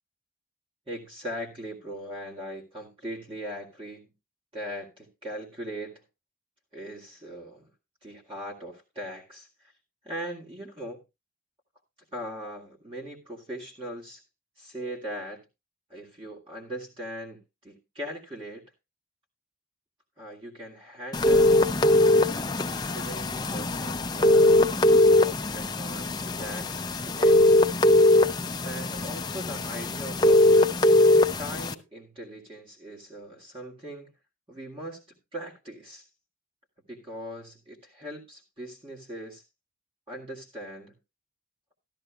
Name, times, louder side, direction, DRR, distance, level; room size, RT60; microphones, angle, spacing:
voice 1, 0.9-4.1 4.5-6.0 6.7-7.7 8.0-9.7 10.0-11.0 12.1-14.2 14.6-15.4 15.9-18.6 20.2-21.6 22.1-24.6 25.2-27.8 28.6-30.7 31.4-34.1 34.5-36.1 36.9-39.4 40.1-40.9, equal, 30° right, 1.9 m, -40 dB
sound 1, 21.1-31.7, left 2 dB, 20° left, 0.5 m, -21 dB
13.5 x 13.0 x 2.2 m
head